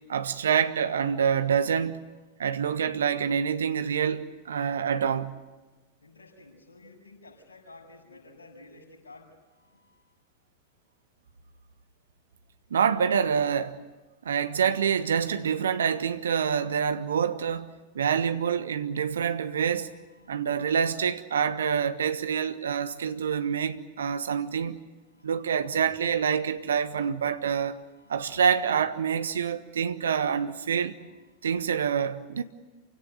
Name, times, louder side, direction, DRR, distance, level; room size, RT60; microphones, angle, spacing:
voice 1, 0.1-2.0 2.4-5.4 12.7-13.8 14.2-19.9 20.3-24.8 25.2-27.8 28.1-30.9 31.4-32.4, right 7 dB, 65° right, 1.3 m, -26 dB
voice 2, 1.2-1.7 6.0-10.0 19.7-20.6 25.1-26.1 27.9-28.8 30.9-31.5, left 3 dB, 70° left, 6.5 m, -53 dB
28.0 x 17.0 x 9.3 m
figure-of-eight pair, 90°, 0 cm